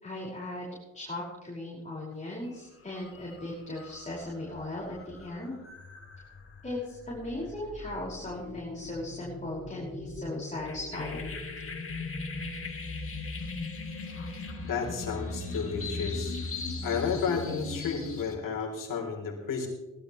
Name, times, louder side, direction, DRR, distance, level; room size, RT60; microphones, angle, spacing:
voice 1, 0.0-5.6 6.6-11.4, left 1 dB, 20° left, -5 dB, 5.4 m, -38 dB
sound 1, 2.3-2.5 2.9-18.3, left 3 dB, 40° left, 2.9 m, -39 dB
voice 2, 14.6-16.4 16.8-19.7, left 6 dB, 70° left, 1 dB, 3.6 m, -32 dB
20.0 x 12.5 x 3.2 m, 1.1 s
supercardioid pair, 60°, 33 cm